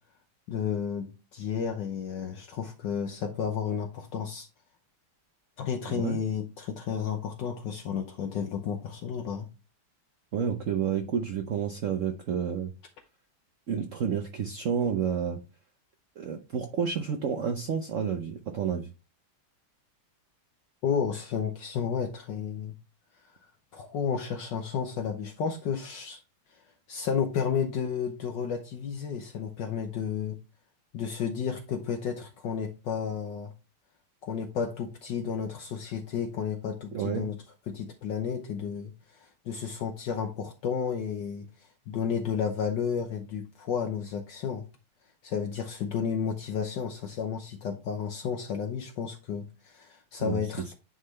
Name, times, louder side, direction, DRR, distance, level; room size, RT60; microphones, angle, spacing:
voice 1, 0.5-4.5 5.6-9.5 20.8-22.7 23.7-26.2 26.5-26.6 26.9-30.4 30.9-33.5 34.2-37.4 37.7-44.6 45.2-50.7, left 7 dB, 70° left, 1.3 m, -32 dB
voice 2, 10.3-12.7 13.7-15.4 16.2-18.9 36.9-37.3 50.2-50.4, right 7 dB, 85° right, 0.6 m, -30 dB
9.4 x 3.8 x 3.1 m
omnidirectional pair, 2.3 m